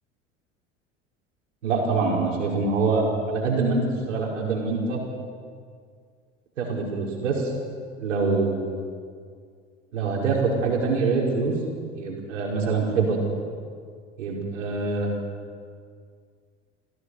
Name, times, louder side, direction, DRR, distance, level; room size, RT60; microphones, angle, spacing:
voice 1, 1.6-5.0 6.6-7.5 8.0-8.6 9.9-11.5 11.9-13.2 14.2-15.1, right 4 dB, 70° right, -1 dB, 5.3 m, -24 dB
28.5 x 16.5 x 6.5 m, 2.1 s
figure-of-eight pair, 70°, 38 cm